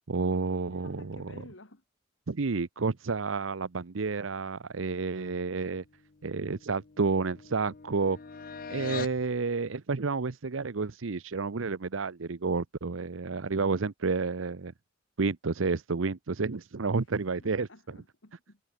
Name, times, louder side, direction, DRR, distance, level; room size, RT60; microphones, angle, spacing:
voice 1, 0.1-1.3 2.3-5.8 6.2-8.2 8.7-14.7 15.2-17.7, right 4 dB, 85° right, 0.8 m, -30 dB
voice 2, 0.7-1.8 16.9-18.6, left 2 dB, 70° left, 3.4 m, -53 dB
sound 1, 6.0-9.2, left 5 dB, 45° left, 0.6 m, -42 dB
head